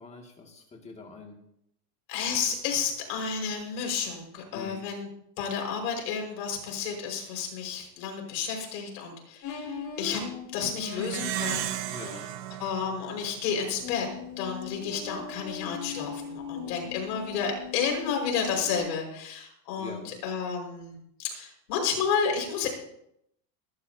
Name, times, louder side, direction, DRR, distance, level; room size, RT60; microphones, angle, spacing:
voice 1, 0.0-1.4 4.5-4.8 11.9-12.3 16.6-17.0 19.8-20.1, left 4 dB, 15° left, 1 dB, 2.3 m, -44 dB
voice 2, 2.1-5.1 5.4-10.2 10.5-12.0 12.6-14.1 14.4-22.7, left 6 dB, 80° left, 1 dB, 5.5 m, -31 dB
sound 1, 9.4-11.7 13.8-18.8, left 6 dB, 40° left, 5.3 m, -39 dB
Plucked string instrument, 11.0-13.8, right 12 dB, 70° right, 1.4 m, -35 dB
21.0 x 12.0 x 2.8 m, 0.75 s
supercardioid pair, 160°, 49 cm